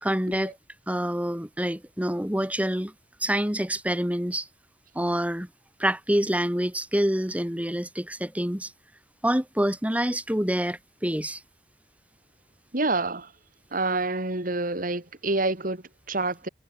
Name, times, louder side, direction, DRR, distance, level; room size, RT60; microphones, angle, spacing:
voice 1, 0.0-0.6 0.9-2.9 3.2-4.5 4.9-5.5 5.8-8.7 9.2-11.4, equal, 10° right, 2.5 m, -26 dB
voice 2, 12.7-13.3 13.7-16.5, right 2 dB, 50° right, 2.7 m, -28 dB
head